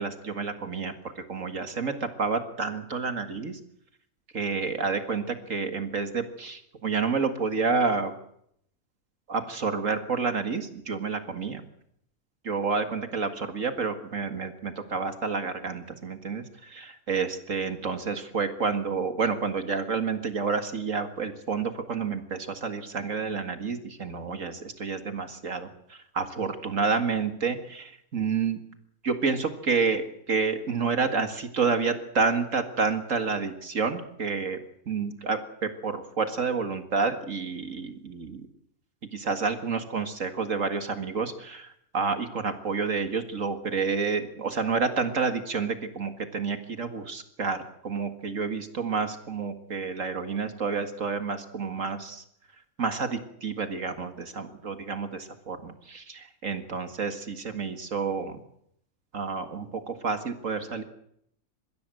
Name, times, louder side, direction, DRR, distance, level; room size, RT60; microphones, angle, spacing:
voice 1, 0.0-3.6 4.3-8.1 9.3-11.6 12.4-28.6 29.0-34.6 34.9-38.5 39.1-52.2 52.8-58.3 59.1-60.8, right 5 dB, 60° right, 8 dB, 2.2 m, -29 dB
30.0 x 16.0 x 7.8 m, 0.72 s
omnidirectional pair, 1.6 m